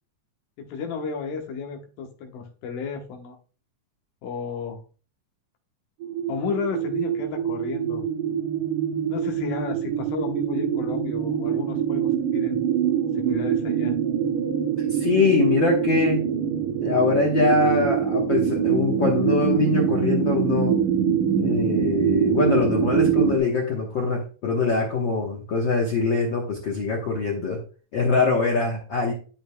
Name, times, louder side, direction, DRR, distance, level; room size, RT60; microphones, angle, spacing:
voice 1, 0.6-3.4 4.2-4.8 6.3-8.4 9.1-12.6 13.2-13.9, left 5 dB, 90° left, 3 dB, 2.8 m, -33 dB
sound 1, 6.0-23.4, right 8 dB, 75° right, 2.3 m, -24 dB
voice 2, 14.9-16.2 16.8-20.7 21.4-27.6 27.9-29.1, left 4 dB, 65° left, -1 dB, 1.2 m, -23 dB
12.5 x 5.1 x 2.2 m, 0.38 s
omnidirectional pair, 3.8 m